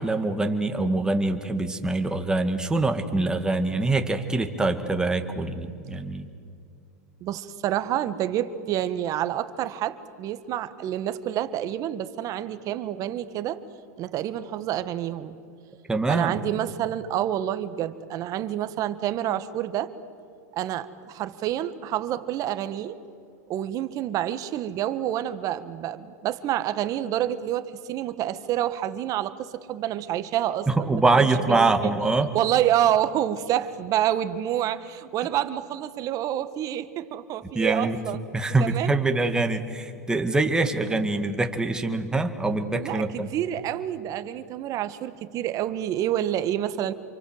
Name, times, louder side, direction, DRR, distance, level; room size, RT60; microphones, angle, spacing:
voice 1, 0.0-6.3 15.9-16.4 30.7-32.3 37.5-38.0 38.3-43.3, right 2 dB, 10° right, 5 dB, 2.1 m, -24 dB
voice 2, 7.2-13.6 14.0-15.4 16.1-19.9 20.5-23.0 23.5-31.9 32.3-38.2 38.6-38.9 42.8-46.9, right 11 dB, 40° right, 12 dB, 1.5 m, -28 dB
28.5 x 24.0 x 7.9 m, 2.4 s
hypercardioid pair, 120°, 9 cm